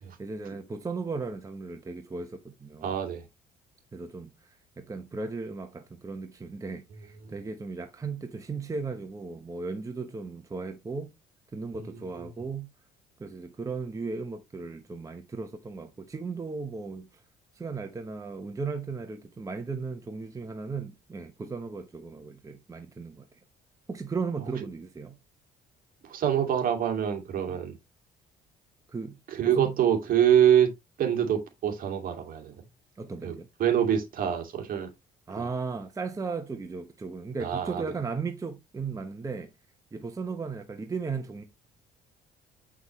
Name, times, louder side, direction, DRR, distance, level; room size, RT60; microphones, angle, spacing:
voice 1, 0.2-2.9 3.9-4.3 4.8-11.1 11.5-12.7 13.2-17.1 17.5-23.3 23.9-25.2 27.5-27.6 28.9-29.2 29.6-29.7 33.0-33.5 35.3-39.5 39.9-41.4, right 4 dB, 20° right, 0.9 m, -36 dB
voice 2, 2.8-3.2 11.8-12.3 26.0-27.8 29.3-30.7 31.0-32.5 33.2-34.9 35.4-35.5 37.4-37.8, right 9 dB, 55° right, 2.2 m, -25 dB
7.1 x 6.0 x 3.0 m
cardioid pair, 110°, 17 cm